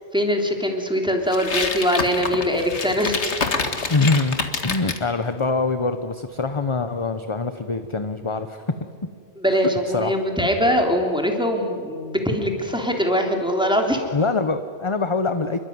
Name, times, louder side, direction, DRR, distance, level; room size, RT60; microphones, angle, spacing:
voice 1, 0.1-3.3 9.4-14.0, equal, 5° right, 2 dB, 3.3 m, -22 dB
sound 1, 1.3-5.0, left 4 dB, 90° left, 2.1 m, -26 dB
voice 2, 3.9-4.4 4.6-8.7 9.9-10.1 14.1-15.6, left 3 dB, 30° left, 9 dB, 0.9 m, -24 dB
27.5 x 22.5 x 9.5 m, 2.2 s
omnidirectional pair, 1.1 m